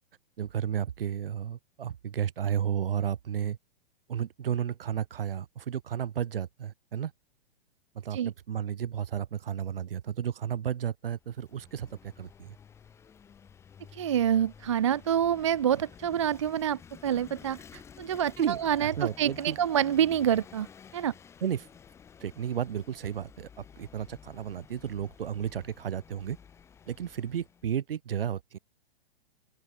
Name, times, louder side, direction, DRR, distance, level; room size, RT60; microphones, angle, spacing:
voice 1, 0.4-3.6 4.1-7.1 7.9-12.6 18.4-19.6 21.4-21.7 22.2-26.4 26.9-28.6, right 9 dB, 65° right, 4.2 m, -33 dB
Vehicle / Engine, 11.2-27.7, left 7 dB, 10° left, 5.4 m, -52 dB
voice 2, 13.9-17.6 18.0-18.9 19.2-20.7 20.9-21.1, right 10 dB, 30° right, 0.5 m, -27 dB
open air
hypercardioid pair, 175°, 30 cm